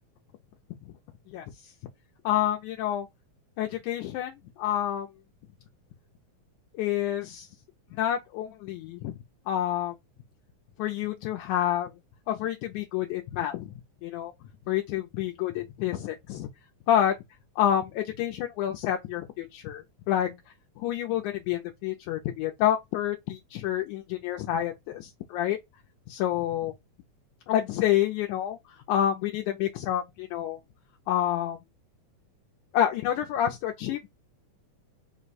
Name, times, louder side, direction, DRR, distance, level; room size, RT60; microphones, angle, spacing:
voice 1, 1.3-1.7 2.3-3.1 3.6-5.1 6.8-7.5 7.9-9.2 9.5-9.9 10.8-11.9 12.3-13.7 14.0-14.3 14.7-16.5 16.9-17.1 17.6-20.4 20.8-25.6 26.1-26.7 27.5-28.6 28.9-30.6 31.1-31.6 32.7-34.1, left 11 dB, 80° left, 1.9 m, -28 dB
5.2 x 2.2 x 4.0 m
omnidirectional pair, 3.7 m